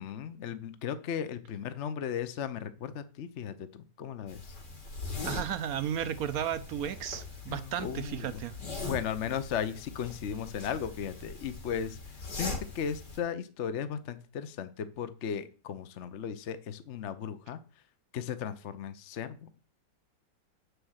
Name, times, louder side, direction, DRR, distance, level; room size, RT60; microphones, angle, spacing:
voice 1, 0.0-4.5 7.5-8.4 8.8-12.0 12.4-17.6 18.1-19.7, left 8 dB, 55° left, 0.9 m, -36 dB
sound 1, 4.3-13.2, left 3 dB, 70° left, 3.7 m, -41 dB
voice 2, 5.2-8.5, right 9 dB, 70° right, 0.9 m, -34 dB
8.5 x 6.5 x 6.3 m
omnidirectional pair, 1.9 m